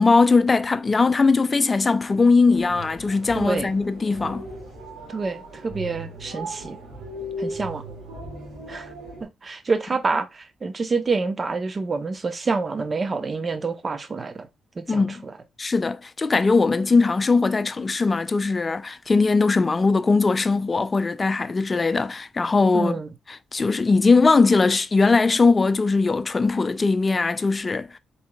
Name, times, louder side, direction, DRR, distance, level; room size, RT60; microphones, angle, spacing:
voice 1, 0.0-4.5 14.9-15.2 15.6-23.0 23.3-27.9, left 4 dB, 40° left, 0.5 m, -20 dB
sound 1, 2.5-9.2, right 1 dB, 80° right, 2.3 m, -37 dB
voice 2, 3.3-3.7 5.1-6.8 7.4-7.8 8.7-8.9 9.4-14.5 14.8-15.3 22.7-23.1, right 4 dB, 40° right, 0.8 m, -27 dB
4.2 x 3.7 x 2.2 m
hypercardioid pair, 45°, 0 cm